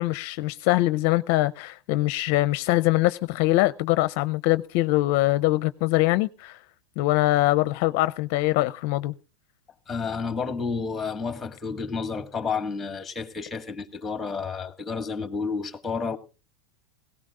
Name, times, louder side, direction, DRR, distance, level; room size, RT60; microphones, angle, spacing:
voice 1, 0.0-6.6 7.0-9.1, left 18 dB, 55° left, 0.6 m, -23 dB
voice 2, 9.9-16.2, left 5 dB, 10° left, 1.8 m, -30 dB
18.0 x 17.0 x 2.5 m
supercardioid pair, 135°, 0 cm